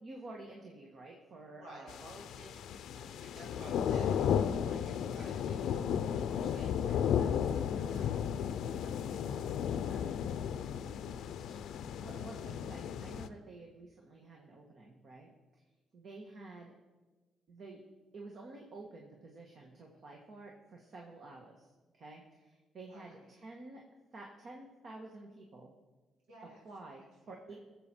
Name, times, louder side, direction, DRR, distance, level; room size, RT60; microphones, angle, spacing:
voice 1, 0.0-1.9 11.7-15.3 15.9-16.7 17.5-17.8 18.1-21.7 21.9-23.8 24.1-25.7 26.6-27.6, right 2 dB, 55° right, 0 dB, 1.6 m, -50 dB
voice 2, 1.4-8.4 8.8-12.2 22.9-23.3 26.3-26.6 26.9-27.1, right 1 dB, 90° right, -4 dB, 3.5 m, -56 dB
sound 1, 1.9-13.3, left 8 dB, 75° left, 0.5 m, -34 dB
18.5 x 7.5 x 4.5 m, 1.3 s
cardioid pair, 90°, 0 cm